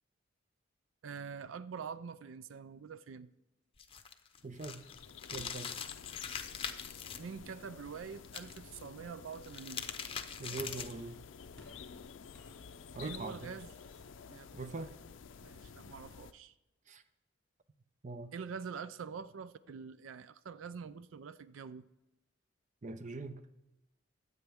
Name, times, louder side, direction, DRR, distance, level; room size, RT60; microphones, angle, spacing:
voice 1, 1.0-3.3 7.2-9.9 13.0-13.7 14.3-14.7 15.4-16.5 18.3-21.9, right 6 dB, 85° right, 0.4 m, -45 dB
sound 1, 3.8-7.2 8.2-8.8 9.3-11.1, left 7 dB, 30° left, 0.7 m, -42 dB
sound 2, 4.4-16.3, left 6 dB, 70° left, 0.5 m, -51 dB
voice 2, 4.4-4.9 5.3-5.8 10.4-11.2 12.9-13.5 14.5-14.9 16.9-17.0 18.0-18.3 22.8-23.4, right 3 dB, 40° right, 0.6 m, -42 dB
sound 3, 10.6-15.0, left 1 dB, 5° left, 2.4 m, -59 dB
22.0 x 8.2 x 3.5 m
head